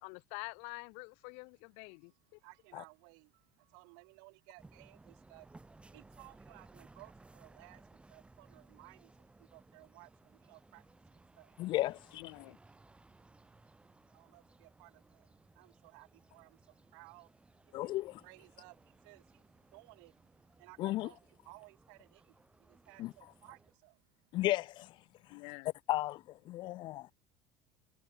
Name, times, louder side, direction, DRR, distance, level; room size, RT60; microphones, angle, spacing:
voice 1, 0.0-2.4 12.2-12.6 25.3-25.7, left 37 dB, 75° left, 1.5 m, -47 dB
voice 2, 2.4-3.3 3.7-5.5 5.9-7.8 8.1-9.1 9.5-10.1 10.5-10.8 11.4-11.5 14.1-14.9 15.6-16.1 16.3-16.5 16.9-17.3 17.8-18.7 19.0-19.2 19.7-20.1 20.6-21.2 21.5-22.1 22.9-23.9, right 38 dB, 80° right, 6.2 m, -57 dB
sound 1, 4.6-23.7, right 2 dB, 10° right, 2.9 m, -61 dB
voice 3, 11.6-12.2 17.7-18.2 20.8-21.1 23.0-23.1 24.3-25.0 25.3-25.4 25.9-27.1, left 16 dB, 50° left, 0.4 m, -34 dB
cardioid pair, 140°, 11 cm